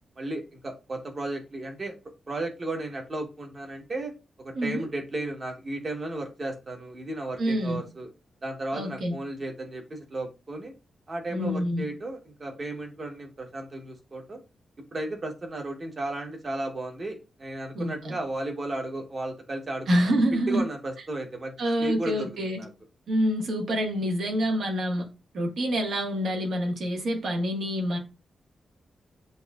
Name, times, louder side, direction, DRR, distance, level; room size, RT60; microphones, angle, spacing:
voice 1, 0.2-2.0 2.3-4.1 4.4-8.1 8.4-10.7 11.1-14.4 14.9-20.2 20.5-22.7, right 2 dB, 30° right, 1.1 m, -34 dB
voice 2, 4.5-4.9 7.4-7.8 8.7-9.2 11.3-11.9 17.7-18.2 19.9-20.7 21.6-22.6 23.1-25.1 25.3-28.0, equal, 65° right, 1.4 m, -27 dB
7.9 x 2.7 x 2.3 m
wide cardioid pair, 165°, 0 cm